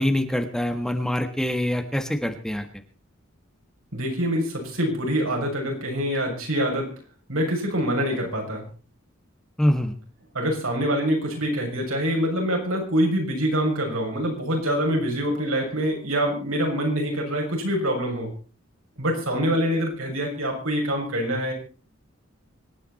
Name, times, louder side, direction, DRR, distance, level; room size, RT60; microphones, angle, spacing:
voice 1, 0.0-2.6 9.6-9.9, equal, 5° left, 5 dB, 1.5 m, -24 dB
voice 2, 3.9-6.9 7.3-8.6 10.3-18.3 19.0-21.5, equal, 85° right, 1 dB, 6.7 m, -25 dB
25.5 x 9.7 x 4.3 m, 0.37 s
head